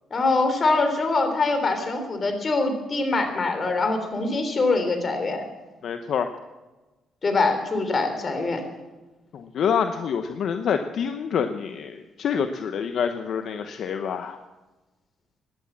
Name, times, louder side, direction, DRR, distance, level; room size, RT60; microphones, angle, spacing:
voice 1, 0.1-5.4 7.2-8.6, left 3 dB, 40° left, 6 dB, 3.5 m, -23 dB
voice 2, 5.8-6.3 9.3-14.4, left 7 dB, 65° left, 7 dB, 0.9 m, -27 dB
16.5 x 11.0 x 7.3 m, 1.2 s
cardioid pair, 90°, 0 cm